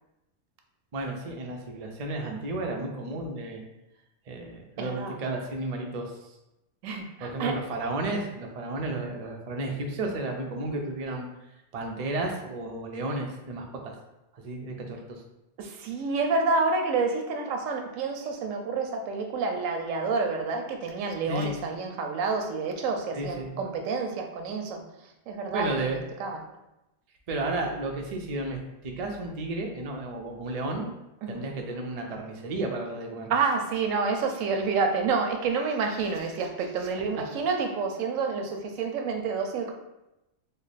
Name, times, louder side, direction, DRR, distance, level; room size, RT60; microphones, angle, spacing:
voice 1, 0.9-3.6 4.3-6.1 7.2-11.3 11.7-13.9 14.3-15.2 21.3-21.5 23.1-23.6 25.5-26.0 27.3-30.9 31.3-33.3, right 2 dB, 65° right, 2 dB, 0.3 m, -32 dB
voice 2, 4.8-5.1 6.8-7.6 15.6-24.8 25.3-26.4 31.2-31.5 33.3-39.7, right 4 dB, 90° right, 3 dB, 1.0 m, -29 dB
3.1 x 2.1 x 3.9 m, 0.94 s
omnidirectional pair, 1.3 m